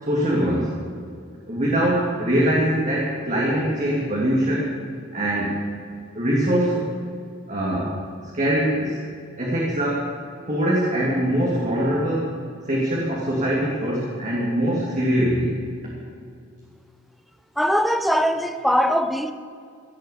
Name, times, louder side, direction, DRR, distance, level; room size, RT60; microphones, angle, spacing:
voice 1, 0.0-0.8 1.5-4.7 5.1-5.8 6.1-6.9 7.5-7.9 8.3-9.0 9.4-10.1 10.5-12.3 12.6-15.6, equal, 40° right, 2.9 m, -22 dB
voice 2, 17.6-19.3, equal, ahead, 0.7 m, -21 dB
17.5 x 8.8 x 8.5 m
head